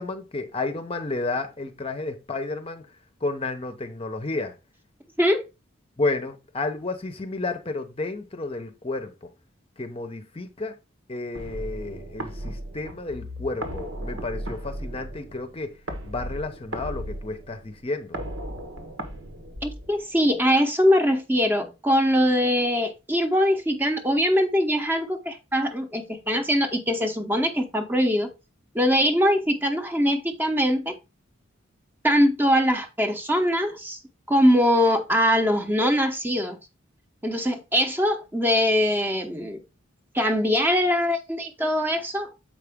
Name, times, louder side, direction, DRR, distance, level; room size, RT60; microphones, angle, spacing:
voice 1, 0.0-2.8 3.2-4.6 6.0-9.3 9.8-10.8 11.1-15.7 16.0-18.2, left 3 dB, 30° left, 0.7 m, -31 dB
sound 1, 11.4-20.3, right 1 dB, 90° right, 1.4 m, -36 dB
voice 2, 19.6-28.3 28.7-30.9 32.0-34.0 34.3-36.6 37.2-39.6 40.1-42.3, equal, 10° right, 0.7 m, -22 dB
7.5 x 4.9 x 3.5 m
head